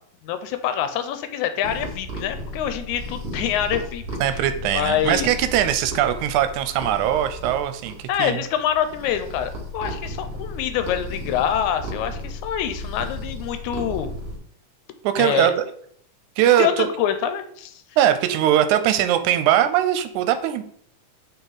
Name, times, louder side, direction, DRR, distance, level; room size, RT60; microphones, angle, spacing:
voice 1, 0.2-4.0 4.7-5.3 8.1-14.1 15.2-15.5 16.6-17.8, left 9 dB, 85° left, 9 dB, 2.0 m, -25 dB
sound 1, 1.6-14.4, left 1 dB, 50° right, 2.2 m, -34 dB
voice 2, 4.2-8.4 15.0-15.6 16.4-16.9 18.0-20.6, right 11 dB, 85° right, 9 dB, 2.0 m, -21 dB
5.4 x 4.4 x 4.0 m, 0.65 s
omnidirectional pair, 3.4 m